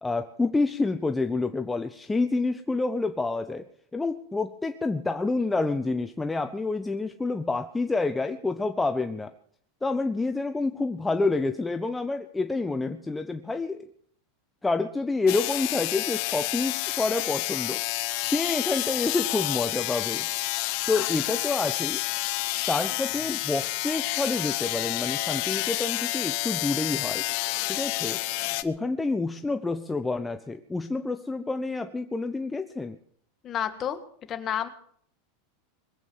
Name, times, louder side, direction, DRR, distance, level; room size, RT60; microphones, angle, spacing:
voice 1, 0.0-3.7 3.9-9.3 9.8-13.9 14.6-17.8 18.2-20.3 20.9-22.0 22.7-27.3 27.7-28.2 28.6-33.0, left 3 dB, 10° left, 8 dB, 0.7 m, -28 dB
sound 1, 15.3-28.6, left 19 dB, 60° left, 0.9 m, -29 dB
voice 2, 33.4-34.0 34.3-34.7, left 9 dB, 35° left, 10 dB, 1.7 m, -30 dB
21.0 x 8.3 x 7.2 m, 0.62 s
supercardioid pair, 120°, 0 cm